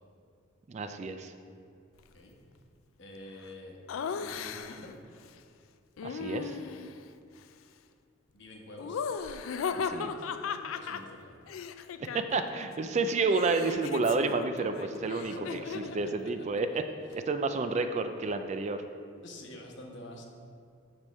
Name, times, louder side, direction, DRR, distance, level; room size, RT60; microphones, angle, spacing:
voice 1, 0.7-1.3 6.0-6.6 9.8-10.1 12.0-16.8 17.1-18.8, right 3 dB, 35° right, 8 dB, 0.3 m, -30 dB
voice 2, 3.0-3.8 4.0-5.0 8.3-9.0 10.7-11.4 14.2-14.5 15.3-16.3 17.1-17.2 19.2-20.2, left 1 dB, 60° left, 1 dB, 1.1 m, -47 dB
Laughter, 3.9-4.9 6.0-7.0 8.8-12.7 12.9-16.0, left 6 dB, 90° left, 0.4 m, -37 dB
8.0 x 3.5 x 6.4 m, 2.4 s
head